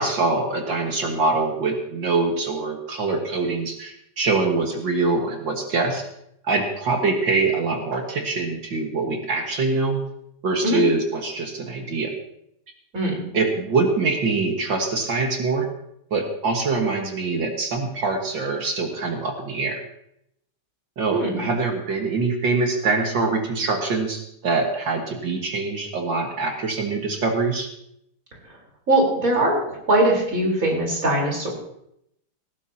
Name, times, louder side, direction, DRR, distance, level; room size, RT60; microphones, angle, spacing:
voice 1, 0.0-6.0 6.5-10.0 10.4-12.1 13.3-15.7 16.1-19.8 21.0-27.7, right 3 dB, 60° right, 2 dB, 2.2 m, -24 dB
voice 2, 21.1-21.4 28.9-31.5, right 1 dB, 40° right, -1 dB, 4.6 m, -21 dB
18.5 x 15.0 x 2.9 m, 0.76 s
omnidirectional pair, 2.3 m